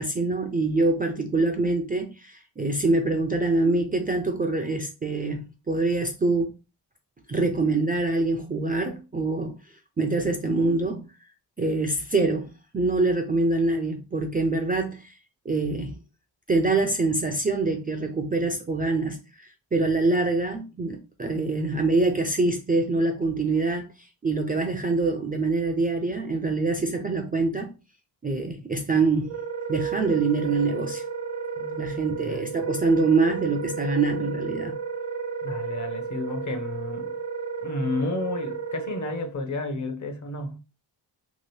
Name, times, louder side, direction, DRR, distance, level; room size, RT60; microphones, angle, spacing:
voice 1, 0.0-6.5 7.3-9.6 10.0-11.0 11.6-15.1 15.5-16.0 16.5-27.7 28.2-29.4 29.7-31.0 31.8-34.8, right 3 dB, 20° right, 0.3 m, -25 dB
Wind instrument woodwind instrument, 29.2-39.3, right 6 dB, 80° right, 0.9 m, -33 dB
voice 2, 31.6-32.6 35.4-37.2 37.6-40.6, left 3 dB, 45° left, 0.7 m, -32 dB
2.9 x 2.4 x 3.1 m
wide cardioid pair, 105°, 43 cm